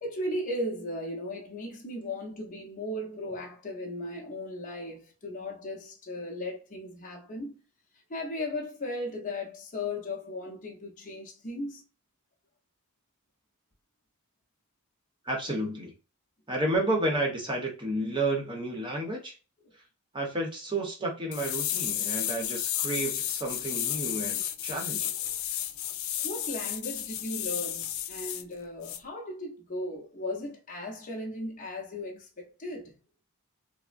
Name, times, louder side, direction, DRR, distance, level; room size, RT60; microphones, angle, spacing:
voice 1, 0.0-7.6 8.1-11.8 26.2-32.9, left 1 dB, 35° left, 0.7 m, -36 dB
voice 2, 15.2-15.9 16.5-19.4 20.1-25.1, right 1 dB, 20° right, 0.8 m, -31 dB
sound 1, 21.3-28.4 28.8-29.0, left 11 dB, 65° left, 0.4 m, -32 dB
3.5 x 2.0 x 2.4 m
head